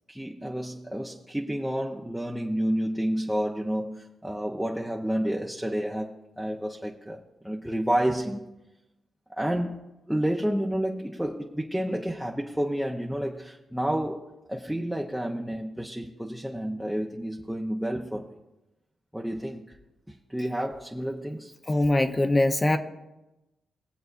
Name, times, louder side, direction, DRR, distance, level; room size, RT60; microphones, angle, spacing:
voice 1, 0.1-8.5 9.3-9.8 10.1-18.3 19.1-19.8 20.1-21.5, equal, 5° right, 0.9 m, -30 dB
voice 2, 21.7-22.8, left 1 dB, 25° left, 0.9 m, -22 dB
21.0 x 7.7 x 2.6 m
supercardioid pair, 60°, 0 cm